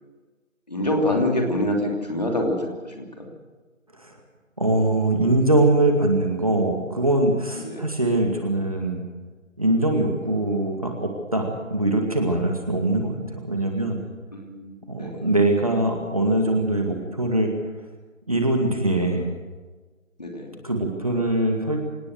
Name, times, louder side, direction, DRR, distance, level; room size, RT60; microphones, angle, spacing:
voice 1, 0.7-3.3 7.6-7.9 14.3-15.3 20.2-20.6, left 1 dB, 30° left, 1 dB, 2.9 m, -26 dB
voice 2, 4.6-9.0 9.6-14.0 14.9-17.5 18.3-19.3 20.6-21.8, right 1 dB, 25° right, 2 dB, 2.1 m, -22 dB
26.5 x 18.5 x 6.4 m, 1.3 s
figure-of-eight pair, 175°, 40 cm